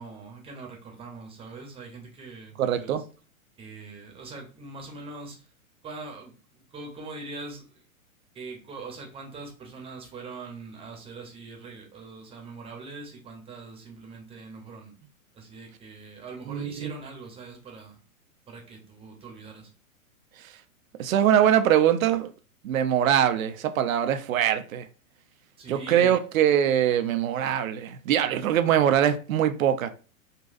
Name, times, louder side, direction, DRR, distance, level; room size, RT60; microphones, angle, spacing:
voice 1, 0.0-3.0 3.6-5.5 5.8-7.8 8.3-14.9 15.3-18.0 18.5-19.7 25.6-26.1, right 3 dB, 15° right, 0.8 m, -42 dB
voice 2, 2.6-3.0 16.5-16.9 21.0-22.3 22.6-24.9 25.7-29.9, right 10 dB, 70° right, 0.6 m, -23 dB
3.9 x 2.3 x 2.5 m
hypercardioid pair, 115°, 43 cm